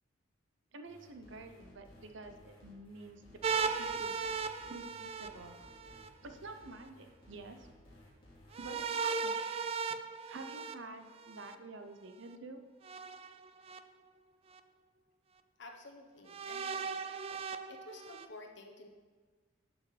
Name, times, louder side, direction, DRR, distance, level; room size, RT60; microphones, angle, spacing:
voice 1, 0.7-3.2 3.5-4.2 4.7-5.6 6.2-7.7 8.6-9.4 10.3-12.6, right 2 dB, 65° right, 7 dB, 0.8 m, -49 dB
sound 1, 0.8-8.7, left 1 dB, 25° left, 2.4 m, -59 dB
sound 2, 3.4-6.1 8.5-11.5 12.8-13.8 14.5-14.6 16.3-18.3, right 5 dB, 30° right, 0.3 m, -37 dB
voice 2, 15.6-16.9 17.7-18.9, left 2 dB, 65° left, 2 dB, 1.1 m, -51 dB
11.5 x 6.3 x 3.3 m, 1.4 s
head